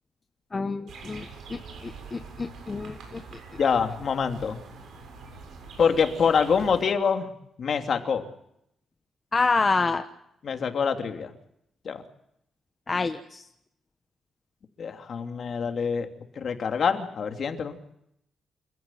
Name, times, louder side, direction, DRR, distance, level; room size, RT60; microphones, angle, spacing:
voice 1, 0.5-1.2 1.5-3.2 9.3-10.0 12.9-13.4, left 4 dB, 25° left, 7 dB, 1.1 m, -27 dB
sound 1, 0.9-6.8, right 4 dB, 75° right, 7.6 m, -44 dB
voice 2, 3.6-4.6 5.8-7.3 7.6-8.2 10.4-11.3 11.8-12.0 14.8-16.1 16.4-17.8, left 6 dB, 50° left, 6 dB, 2.9 m, -25 dB
28.5 x 14.5 x 9.1 m, 0.76 s
cardioid pair, 125°, 0 cm